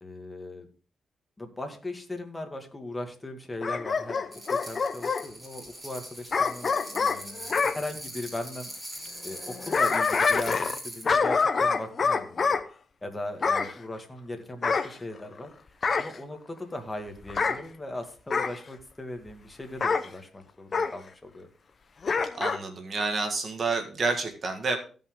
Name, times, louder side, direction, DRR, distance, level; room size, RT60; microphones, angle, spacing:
voice 1, 0.0-0.7 1.4-4.2 4.5-8.7 9.2-12.6 13.0-15.5 16.0-21.5, left 1 dB, 20° left, 4 dB, 2.0 m, -38 dB
Bark / Growling, 3.6-5.2 6.3-7.8 9.4-10.8 11.1-12.6 13.4-13.7 14.6-15.4 15.8-16.2 17.3-17.6 18.3-18.6 19.8-20.1 20.7-20.9 22.0-22.6 23.0-23.1, left 5 dB, 45° left, 0.8 m, -26 dB
sound 1, 4.3-11.1, equal, 10° right, 5.0 m, -41 dB
voice 2, 22.3-24.8, right 3 dB, 50° right, 5 dB, 1.7 m, -29 dB
15.5 x 5.6 x 3.8 m, 0.39 s
cardioid pair, 80°, 0 cm